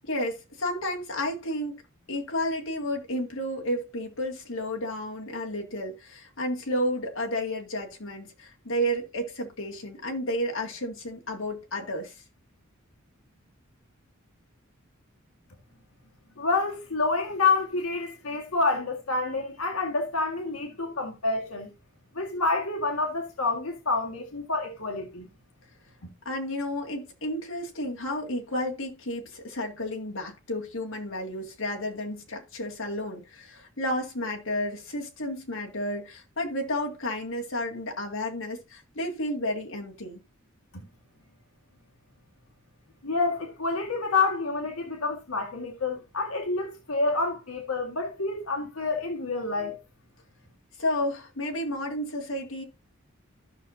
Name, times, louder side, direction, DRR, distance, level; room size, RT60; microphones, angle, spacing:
voice 1, 0.0-1.7 2.1-12.2 26.3-40.2 50.8-52.6, left 1 dB, 65° left, 2.1 m, -31 dB
voice 2, 16.4-21.7 22.1-25.3 43.0-49.8, left 3 dB, 85° left, 1.7 m, -28 dB
15.0 x 5.8 x 2.6 m
head